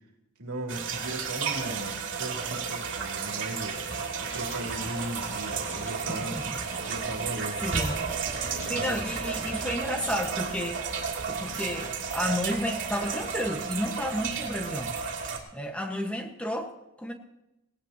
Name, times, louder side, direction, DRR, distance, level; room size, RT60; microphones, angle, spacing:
voice 1, 0.4-3.8 4.2-6.4 6.9-7.6 8.7-9.0, right 1 dB, 80° right, 1 dB, 2.8 m, -37 dB
sound 1, 0.7-15.4, right 5 dB, 55° right, 2.8 m, -33 dB
sound 2, 4.3-9.8, left 1 dB, 35° left, 3.1 m, -45 dB
voice 2, 6.1-6.5 7.3-7.9 8.5-16.7 17.0-17.1, equal, 5° left, 3 dB, 1.3 m, -32 dB
19.5 x 17.0 x 2.9 m, 0.87 s
head